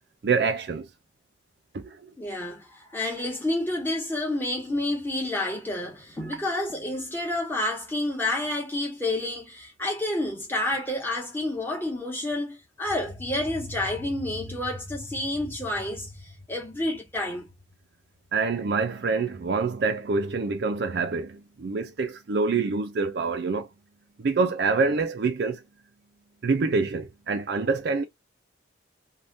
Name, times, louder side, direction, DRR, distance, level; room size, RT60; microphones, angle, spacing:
voice 1, 0.2-0.9 1.7-2.0 6.3-6.4 18.3-23.7 24.2-25.6 26.4-28.0, right 4 dB, 55° right, 0.4 m, -26 dB
voice 2, 2.2-17.5, left 1 dB, 10° left, 1.2 m, -29 dB
3.3 x 2.2 x 2.6 m
head